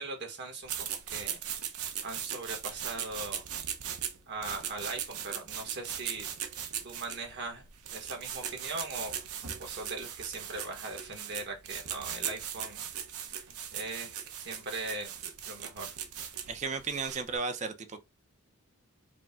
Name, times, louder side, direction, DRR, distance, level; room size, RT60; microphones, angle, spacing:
voice 1, 0.0-1.4 2.0-3.4 4.3-6.3 6.8-7.6 7.9-9.2 9.6-12.9 13.4-13.5 13.7-15.9, right 3 dB, 50° right, 1.3 m, -40 dB
sound 1, 0.6-17.4, right 9 dB, 80° right, 0.7 m, -39 dB
voice 2, 16.5-18.0, right 4 dB, 30° right, 0.6 m, -34 dB
5.0 x 2.1 x 3.5 m
head